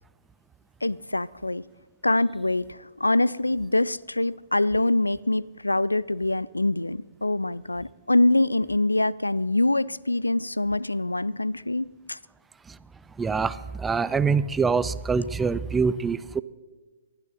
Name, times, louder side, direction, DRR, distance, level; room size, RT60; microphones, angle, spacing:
voice 1, 0.8-1.6 2.0-12.2, left 2 dB, 80° left, 21 dB, 0.4 m, -24 dB
voice 2, 13.2-16.4, right 5 dB, 10° right, 16 dB, 0.4 m, -25 dB
20.0 x 12.5 x 4.1 m, 1.3 s
figure-of-eight pair, 120°, 0 cm